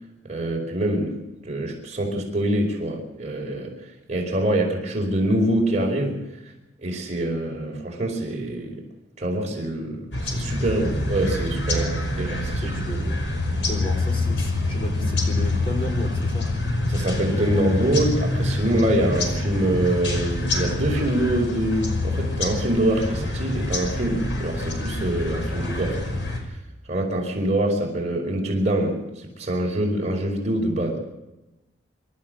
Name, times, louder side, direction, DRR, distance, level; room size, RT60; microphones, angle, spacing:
voice 1, 0.2-1.2 1.4-3.7 4.1-6.2 6.8-8.8 9.2-11.8 12.2-12.6 16.9-26.2 26.9-31.0, right 1 dB, 40° right, 0 dB, 4.9 m, -25 dB
sound 1, 10.1-26.4, left 2 dB, 85° left, 5.5 m, -26 dB
voice 2, 11.6-13.3 13.6-16.5, equal, 30° left, 2 dB, 5.7 m, -33 dB
27.5 x 13.5 x 7.9 m, 0.98 s
head